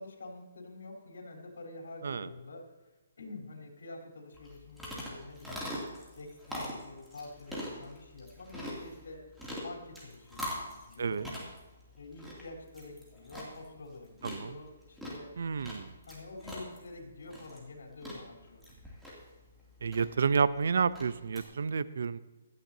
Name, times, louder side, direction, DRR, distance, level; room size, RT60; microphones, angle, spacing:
voice 1, 0.0-5.7 6.2-9.2 9.6-11.3 12.0-15.3 16.1-18.7, left 2 dB, 85° left, 2 dB, 3.7 m, -47 dB
sound 1, 4.3-21.4, equal, ahead, 2.7 m, -44 dB
voice 2, 14.2-14.6 15.4-15.9 19.8-22.2, right 5 dB, 70° right, 16 dB, 0.6 m, -30 dB
16.5 x 13.0 x 2.8 m, 1.1 s
hypercardioid pair, 160°, 0 cm